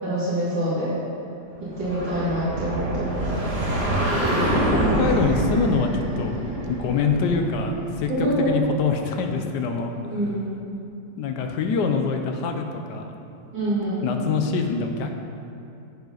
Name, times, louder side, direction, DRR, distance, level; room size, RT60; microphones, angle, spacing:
voice 1, 0.0-0.9 1.6-3.2 8.1-8.5 10.1-10.5 13.5-14.0, right 1 dB, 85° right, -13 dB, 3.2 m, -25 dB
sound 1, 1.7-8.3, right 1 dB, 35° right, 1.9 m, -25 dB
voice 2, 4.5-6.4 6.7-9.9 11.2-13.1 14.0-15.1, left 4 dB, 75° left, 5 dB, 1.3 m, -25 dB
9.9 x 7.7 x 4.0 m, 2.7 s
omnidirectional pair, 1.9 m